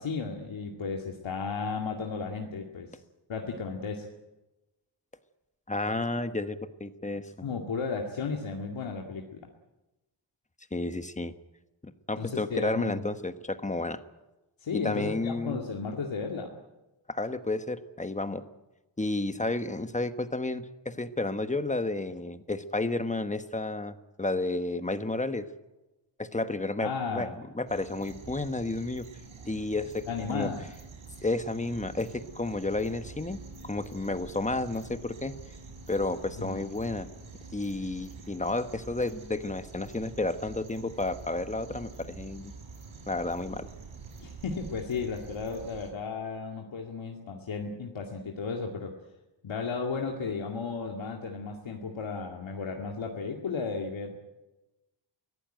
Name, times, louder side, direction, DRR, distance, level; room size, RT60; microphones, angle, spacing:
voice 1, 0.0-2.9 3.3-4.1 7.4-9.5 12.2-13.0 14.6-16.6 26.8-27.3 30.1-30.6 36.4-36.6 44.2-49.0 49.4-54.2, left 5 dB, 75° left, 1 dB, 2.3 m, -34 dB
voice 2, 5.7-7.2 10.7-11.3 11.8-14.0 14.7-15.6 17.1-18.4 19.0-25.5 26.2-27.3 27.5-29.1 29.4-30.1 30.3-30.5 31.2-35.4 35.9-37.1 37.5-42.5 43.1-43.7, left 2 dB, 15° left, 10 dB, 1.2 m, -31 dB
sound 1, 27.7-45.9, right 4 dB, 80° right, 4.8 m, -47 dB
23.5 x 17.5 x 9.2 m, 1.0 s
wide cardioid pair, 130°, 47 cm